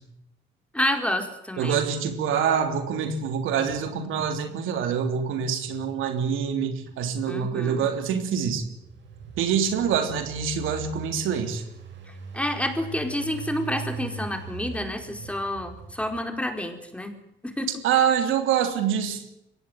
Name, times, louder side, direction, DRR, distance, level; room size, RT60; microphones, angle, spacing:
voice 1, 0.7-1.8 7.3-7.8 12.3-17.1 17.4-17.7, left 1 dB, 5° left, 5 dB, 4.6 m, -29 dB
voice 2, 1.6-8.6 9.4-11.6 17.8-19.2, right 7 dB, 90° right, 7 dB, 3.4 m, -25 dB
Engine, 8.4-16.5, right 4 dB, 65° right, 6.4 m, -40 dB
23.0 x 17.5 x 9.3 m, 0.79 s
cardioid pair, 90°, 20 cm